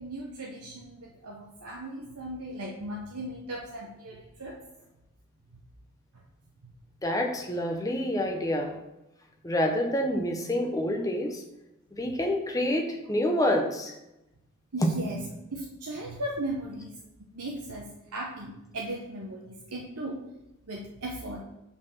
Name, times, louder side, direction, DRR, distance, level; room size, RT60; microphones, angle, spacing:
voice 1, 0.0-4.6 14.7-15.2 15.5-16.9 17.3-17.9 18.1-20.2 20.7-21.4, right 1 dB, 90° right, -2 dB, 0.9 m, -37 dB
voice 2, 7.0-8.8 9.4-11.4 11.9-13.9 14.8-14.9, left 1 dB, 15° left, 2 dB, 0.8 m, -27 dB
5.8 x 4.2 x 5.8 m, 0.92 s
head